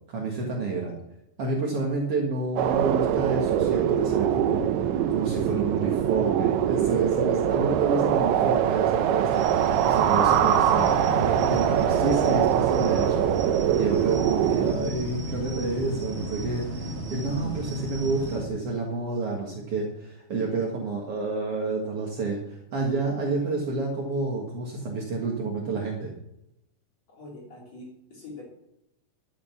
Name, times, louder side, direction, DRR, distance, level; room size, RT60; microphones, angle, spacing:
voice 1, 0.1-0.9 1.4-4.6 5.1-13.2 13.8-26.1, right 3 dB, 55° right, -1 dB, 1.7 m, -29 dB
sound 1, 2.6-14.7, right 10 dB, 80° right, 2.5 m, -23 dB
sound 2, 9.3-18.4, right 1 dB, 30° right, 1.3 m, -33 dB
voice 2, 27.1-28.4, left 2 dB, 40° left, -3 dB, 4.0 m, -44 dB
12.5 x 8.1 x 7.1 m, 0.83 s
omnidirectional pair, 5.2 m